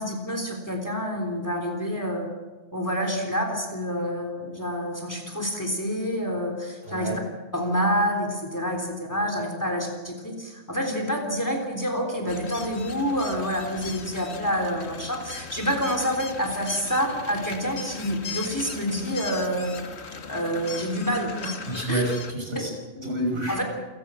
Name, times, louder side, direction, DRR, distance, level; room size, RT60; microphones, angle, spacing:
voice 1, 0.0-2.3 2.7-7.1 7.5-19.7 20.3-21.6 21.9-22.0 22.5-22.7 23.5-23.6, equal, 15° left, 3 dB, 3.5 m, -28 dB
voice 2, 6.8-7.2 21.7-23.6, right 1 dB, 60° right, 1 dB, 6.1 m, -28 dB
sound 1, 12.3-22.3, left 5 dB, 90° left, 1.6 m, -38 dB
28.5 x 16.0 x 6.4 m, 1.2 s
omnidirectional pair, 1.1 m